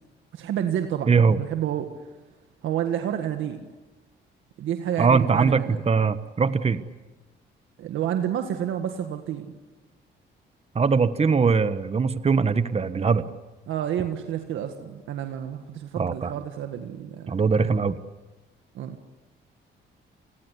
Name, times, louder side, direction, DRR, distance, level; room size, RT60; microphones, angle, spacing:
voice 1, 0.3-1.9 2.6-3.6 4.6-5.8 7.8-9.5 13.7-17.7 18.7-19.0, right 10 dB, 80° right, 6 dB, 1.8 m, -29 dB
voice 2, 1.1-1.4 5.0-6.8 10.7-13.3 16.0-16.3 17.3-18.0, right 5 dB, 30° right, 12 dB, 1.3 m, -21 dB
29.0 x 20.5 x 8.3 m, 1.1 s
cardioid pair, 90°, 20 cm